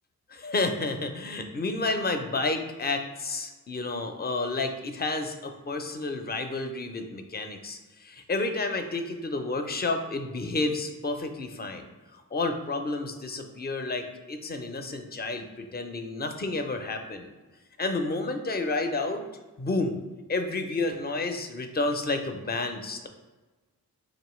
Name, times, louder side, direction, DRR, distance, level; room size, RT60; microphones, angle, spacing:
voice 1, 0.3-7.8 8.0-11.9 12.3-17.3 17.8-19.3 19.6-20.0 20.3-23.1, left 3 dB, 25° left, 6 dB, 0.5 m, -30 dB
4.1 x 2.9 x 3.1 m, 1.2 s
cardioid pair, 45°, 38 cm